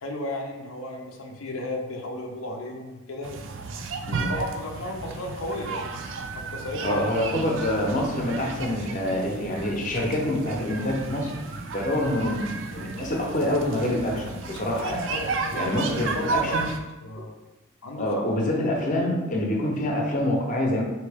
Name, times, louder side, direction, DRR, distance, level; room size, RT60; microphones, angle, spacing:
voice 1, 0.0-3.3 4.2-6.0 6.4-7.1 15.1-16.6 17.0-17.3 17.8-18.2, left 1 dB, 85° left, 1 dB, 0.6 m, -34 dB
sound 1, 3.2-16.8, right 4 dB, 60° right, 0.4 m, -33 dB
voice 2, 6.8-11.3 11.7-15.1 15.5-16.6 18.0-20.8, left 1 dB, 40° left, -1 dB, 0.7 m, -26 dB
4.5 x 2.8 x 3.4 m, 1.1 s
head